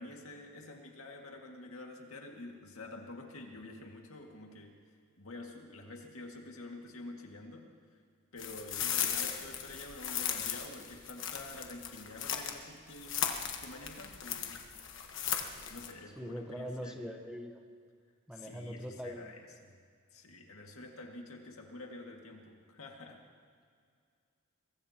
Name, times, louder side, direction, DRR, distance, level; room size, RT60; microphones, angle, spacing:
voice 1, 0.0-4.8 5.2-7.7 8.3-13.4 13.6-14.7 15.7-17.2 18.3-19.8 20.1-23.2, left 2 dB, 75° left, 1 dB, 2.0 m, -48 dB
sound 1, 8.4-12.6 12.9-15.9, left 9 dB, 60° left, 1.3 m, -37 dB
voice 2, 16.2-17.6 18.3-19.4, equal, 5° right, 2 dB, 1.0 m, -42 dB
23.5 x 20.5 x 2.9 m, 2.2 s
head